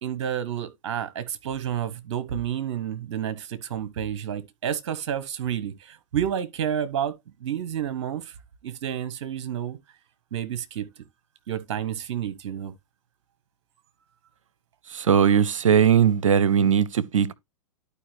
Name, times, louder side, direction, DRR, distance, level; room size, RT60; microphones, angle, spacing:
voice 1, 0.0-7.1 7.4-8.3 8.6-9.8 10.3-10.9 11.5-12.7, right 9 dB, 55° right, 1.1 m, -30 dB
voice 2, 14.9-17.3, right 8 dB, 75° right, 0.7 m, -19 dB
11.5 x 4.8 x 3.2 m
figure-of-eight pair, 105°, 17 cm